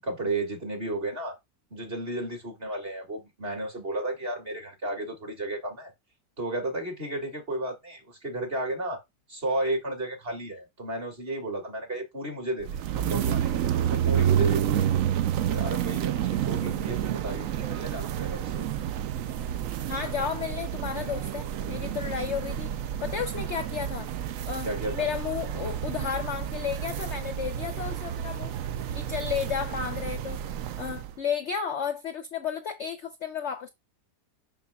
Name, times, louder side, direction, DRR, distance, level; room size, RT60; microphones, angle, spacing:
voice 1, 0.0-1.4 1.7-5.9 6.4-9.0 9.3-12.7 12.9-14.9 15.5-18.7 24.6-24.9, right 1 dB, 35° right, 2.0 m, -33 dB
sound 1, 12.6-31.2, right 10 dB, 70° right, 0.8 m, -29 dB
voice 2, 19.9-24.1 24.5-24.7 24.9-28.5 28.9-30.4 30.8-33.7, left 7 dB, 60° left, 0.7 m, -32 dB
7.0 x 6.1 x 2.3 m
omnidirectional pair, 1.8 m